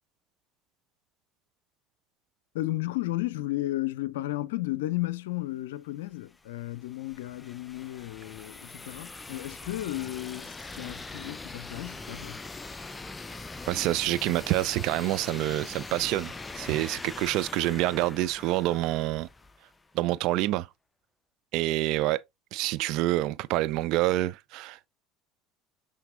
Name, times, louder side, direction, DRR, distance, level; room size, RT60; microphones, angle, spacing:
voice 1, 2.5-12.4, left 17 dB, 70° left, 0.5 m, -33 dB
sound 1, 6.2-19.9, left 3 dB, 15° left, 0.6 m, -42 dB
voice 2, 13.7-19.3 19.9-20.7 21.5-22.2 22.5-24.9, right 16 dB, 60° right, 0.5 m, -27 dB
10.0 x 3.8 x 2.6 m
figure-of-eight pair, 65°, 0 cm